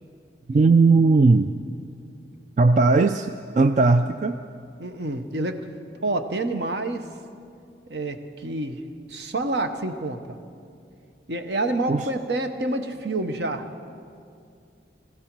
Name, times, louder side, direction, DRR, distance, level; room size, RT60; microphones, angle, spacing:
voice 1, 0.5-1.6 2.6-4.4 11.9-12.1, right 3 dB, 40° right, 9 dB, 0.3 m, -18 dB
voice 2, 4.8-5.7 6.0-7.1 7.9-8.8 9.1-10.2 11.3-13.7, right 2 dB, 70° right, 7 dB, 0.9 m, -28 dB
21.0 x 15.0 x 4.6 m, 2.4 s
head